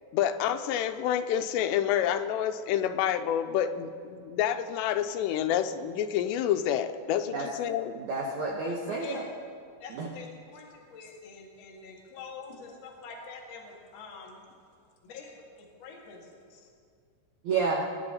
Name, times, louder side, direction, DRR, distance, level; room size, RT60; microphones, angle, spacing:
voice 1, 0.1-7.9, left 10 dB, 85° left, 8 dB, 2.8 m, -28 dB
voice 2, 7.9-9.3 9.9-10.1 17.4-17.9, right 4 dB, 70° right, -1 dB, 1.9 m, -30 dB
voice 3, 8.7-9.2 9.8-10.3 10.5-14.4 15.1-15.3 15.6-16.2 16.5-16.6, left 5 dB, 45° left, -2 dB, 2.4 m, -45 dB
24.0 x 9.9 x 4.2 m, 2.2 s
omnidirectional pair, 5.0 m